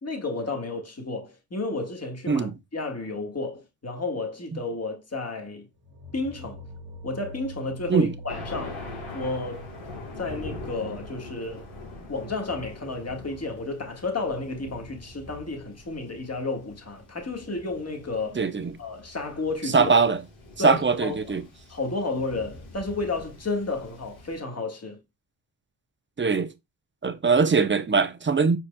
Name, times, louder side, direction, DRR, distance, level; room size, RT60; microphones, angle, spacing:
voice 1, 0.0-2.5 2.7-5.7 6.1-6.6 7.0-8.8 9.1-9.7 10.2-11.7 12.1-18.4 18.8-19.9 20.6-21.4 21.7-25.0, left 3 dB, 30° left, 1.6 m, -32 dB
sound 1, 5.8-14.7, equal, 85° right, 1.7 m, -45 dB
Thunder, 8.3-24.4, left 2 dB, 75° left, 1.9 m, -43 dB
voice 2, 18.4-18.7 19.7-20.2 20.6-21.4 26.2-26.5 27.0-28.6, right 5 dB, 25° right, 0.6 m, -21 dB
4.8 x 4.5 x 2.2 m
cardioid pair, 55°, 49 cm